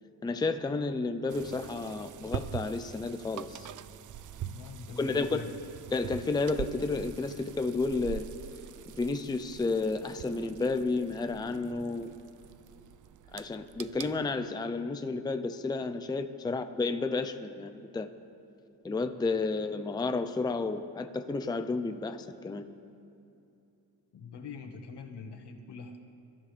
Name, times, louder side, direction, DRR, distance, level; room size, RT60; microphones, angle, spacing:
voice 1, 0.2-3.7 4.9-5.5 5.9-8.2 9.0-12.1 13.3-18.1 18.8-22.7, left 3 dB, 10° left, 8 dB, 0.5 m, -31 dB
sound 1, 1.3-14.4, right 10 dB, 50° right, 0.5 m, -44 dB
voice 2, 4.4-5.6 16.4-16.6 24.1-26.0, left 5 dB, 80° left, 4 dB, 1.6 m, -44 dB
29.5 x 14.0 x 3.4 m, 2.7 s
wide cardioid pair, 150°, 40 cm